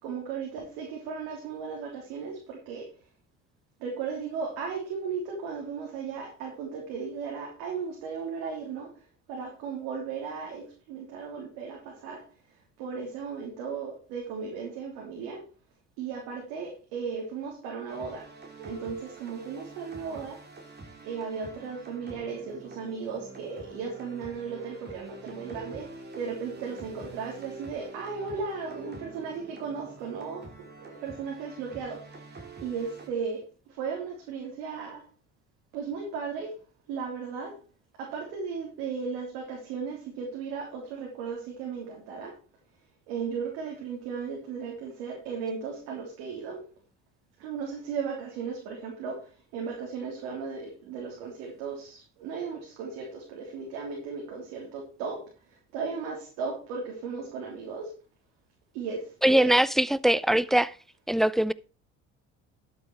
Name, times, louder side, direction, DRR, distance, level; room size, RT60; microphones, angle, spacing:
voice 1, 0.0-2.9 3.8-8.9 9.3-12.2 12.8-15.4 16.0-18.3 18.6-20.4 21.0-30.5 30.8-32.1 32.6-35.0 35.7-36.6 36.9-37.6 38.0-42.3 43.1-46.6 47.4-55.2 55.7-57.9 58.7-59.5, right 5 dB, 85° right, 3.3 m, -36 dB
sound 1, 17.9-33.1, right 3 dB, 35° right, 5.2 m, -46 dB
voice 2, 59.2-60.7 61.1-61.5, right 1 dB, ahead, 0.5 m, -22 dB
12.0 x 8.0 x 4.7 m
supercardioid pair, 70°, 30 cm